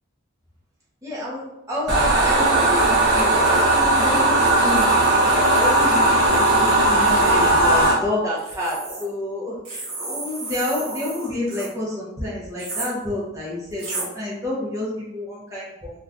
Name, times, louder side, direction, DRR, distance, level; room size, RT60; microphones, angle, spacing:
voice 1, 1.0-16.0, left 1 dB, 15° right, -7 dB, 0.7 m, -29 dB
sound 1, 1.9-7.9, right 2 dB, 55° right, 0.7 m, -17 dB
sound 2, 8.4-9.0 9.6-11.7 12.6-12.9 13.8-14.1, right 2 dB, 75° right, 1.3 m, -32 dB
2.5 x 2.4 x 3.3 m, 0.93 s
head